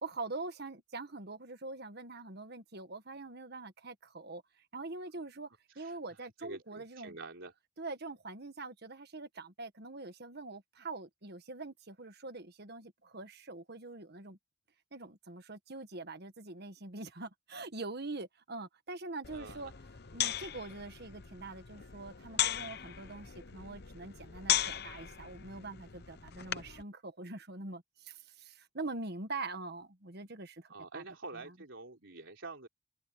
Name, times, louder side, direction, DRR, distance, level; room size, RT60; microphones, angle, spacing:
voice 1, 0.0-5.5 5.7-7.2 7.8-14.4 14.9-19.7 20.1-31.0 31.4-31.5, right 3 dB, 50° right, 1.6 m, -44 dB
voice 2, 6.4-7.5 19.3-19.7 30.7-32.7, right 3 dB, 65° right, 3.9 m, -47 dB
sound 1, 19.2-26.8, left 11 dB, 50° left, 0.9 m, -37 dB
head